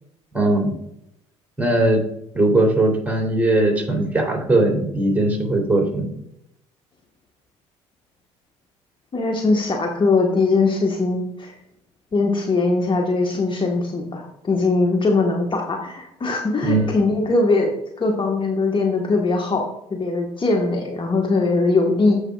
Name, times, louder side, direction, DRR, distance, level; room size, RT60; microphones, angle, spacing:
voice 1, 0.3-0.7 1.6-2.0 2.3-6.1 16.6-17.0, right 2 dB, 10° right, 0 dB, 3.1 m, -19 dB
voice 2, 9.1-11.5 12.1-19.6 19.9-22.2, left 3 dB, 35° left, 1 dB, 1.3 m, -21 dB
14.0 x 5.4 x 2.3 m, 0.79 s
hypercardioid pair, 60°, 15 cm